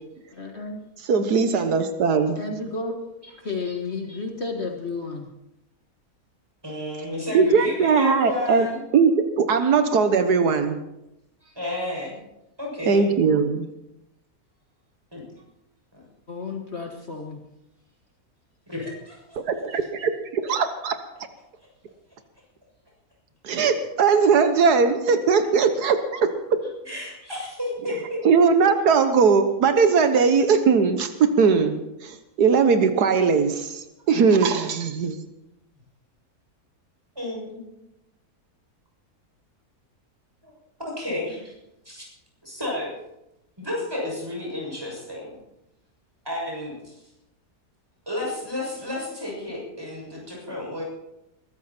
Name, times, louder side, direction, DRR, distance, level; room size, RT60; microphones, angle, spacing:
voice 1, 0.3-0.8 2.4-3.0 3.4-5.3 16.3-17.4, left 3 dB, 45° left, 2 dB, 1.8 m, -32 dB
voice 2, 1.0-2.4 7.3-8.7 8.9-10.8 12.9-13.7 19.4-20.9 23.4-26.6 27.9-28.0 28.2-35.2, right 5 dB, 85° right, 9 dB, 1.7 m, -20 dB
voice 3, 3.2-3.8 4.1-4.2 6.6-8.8 11.4-12.2 12.6-13.0 15.1-15.2 15.9-16.0 18.7-19.2 26.9-28.2 37.1-37.6 40.4-40.5 40.8-41.5 41.8-42.0 42.4-42.9 43.6-45.4 46.2-47.0 48.1-50.8, left 1 dB, 15° right, -2 dB, 6.7 m, -32 dB
22.0 x 14.0 x 4.4 m, 0.88 s
omnidirectional pair, 1.7 m